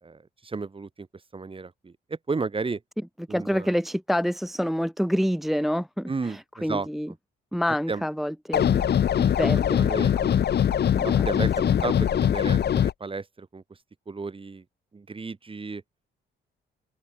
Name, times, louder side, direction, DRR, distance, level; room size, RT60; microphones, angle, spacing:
voice 1, 0.0-1.1 1.3-2.8 3.3-3.7 6.0-7.1 7.9-8.0 9.8-10.2 11.0-13.6 14.1-14.6 14.9-15.8, right 4 dB, 25° right, 3.7 m, -33 dB
voice 2, 3.3-7.1 7.5-8.8 9.2-9.8 10.2-10.5 11.0-11.2 11.6-11.7, equal, ahead, 0.7 m, -27 dB
sound 1, 8.5-12.9, left 9 dB, 55° left, 1.6 m, -22 dB
open air
cardioid pair, 90°, 20 cm